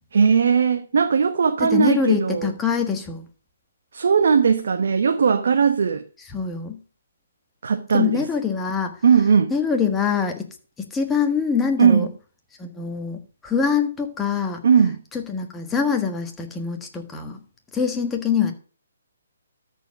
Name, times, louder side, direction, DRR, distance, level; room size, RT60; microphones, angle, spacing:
voice 1, 0.1-2.5 3.9-6.0 7.6-8.2 9.0-9.5 11.8-12.1 14.6-15.0, right 6 dB, 60° right, 1.0 m, -18 dB
voice 2, 1.6-3.2 6.3-6.8 7.9-9.0 9.5-10.5 10.8-12.1 12.6-14.6 15.1-17.4 17.7-18.5, left 6 dB, 10° left, 1.5 m, -24 dB
13.0 x 4.6 x 6.0 m
figure-of-eight pair, 140°, 0 cm